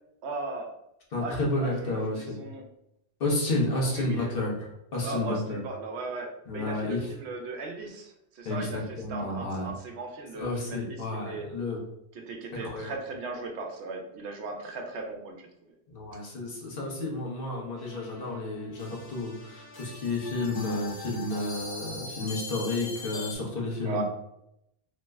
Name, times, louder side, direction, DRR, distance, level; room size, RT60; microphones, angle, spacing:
voice 1, 0.2-0.7 1.2-2.6 3.8-4.3 5.0-11.5 12.1-15.5 23.8-24.0, right 3 dB, 80° right, 3 dB, 0.9 m, -37 dB
voice 2, 1.1-2.4 3.2-5.6 6.5-7.1 8.4-9.7 10.3-11.8 12.6-12.9 15.9-24.0, left 2 dB, 60° left, -2 dB, 1.0 m, -31 dB
sound 1, 17.8-23.4, left 2 dB, 30° left, 0.4 m, -41 dB
3.0 x 2.1 x 3.4 m, 0.81 s
omnidirectional pair, 1.1 m